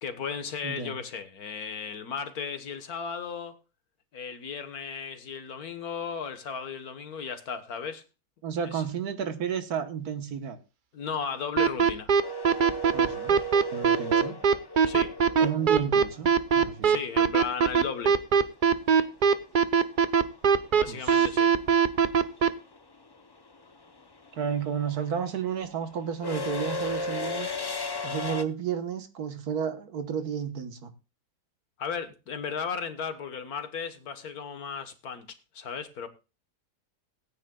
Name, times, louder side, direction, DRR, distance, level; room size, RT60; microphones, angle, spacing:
voice 1, 0.0-3.6 4.1-8.0 8.6-8.8 10.9-12.1 14.8-15.1 16.8-18.1 20.7-21.5 31.8-36.1, left 6 dB, 65° left, 1.7 m, -35 dB
voice 2, 0.6-1.0 8.4-10.6 12.9-13.4 13.7-14.4 15.4-17.0 20.9-21.3 24.3-27.6 28.0-30.9, right 7 dB, 70° right, 1.6 m, -32 dB
sound 1, 11.6-22.5, right 6 dB, 45° right, 0.6 m, -20 dB
sound 2, 12.2-16.3 18.7-18.8 20.1-20.4 20.6-28.4, left 1 dB, 35° left, 0.3 m, -35 dB
19.0 x 9.6 x 2.3 m
omnidirectional pair, 1.7 m